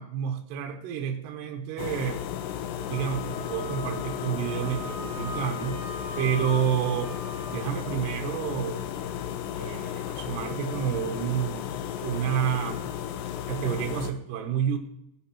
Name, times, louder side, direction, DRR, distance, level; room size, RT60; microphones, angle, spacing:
voice 1, 0.0-2.3 2.8-7.1 7.5-8.8 9.5-11.7 12.0-12.8 13.5-14.8, right 9 dB, 75° right, 3 dB, 2.9 m, -29 dB
sound 1, 1.8-14.1, left 10 dB, 80° left, 2.7 m, -34 dB
Wind instrument woodwind instrument, 2.9-7.6, left 2 dB, 45° left, 4.6 m, -40 dB
16.5 x 8.9 x 2.9 m, 0.81 s
omnidirectional pair, 5.3 m